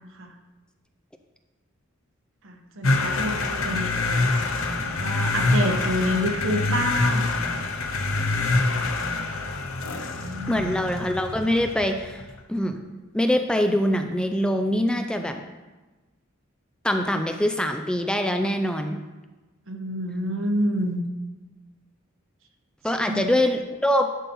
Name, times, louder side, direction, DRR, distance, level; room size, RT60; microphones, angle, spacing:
voice 1, 2.4-4.2 4.5-7.6 9.8-10.7 19.7-21.0 23.0-23.2, equal, 65° right, 4 dB, 1.1 m, -29 dB
sound 1, 2.8-12.2, left 3 dB, 75° left, 0.9 m, -25 dB
voice 2, 10.5-12.2 12.5-12.8 13.1-15.4 16.8-19.0 22.8-24.1, left 1 dB, 5° left, 5 dB, 0.4 m, -24 dB
11.0 x 4.2 x 5.4 m, 1.2 s
head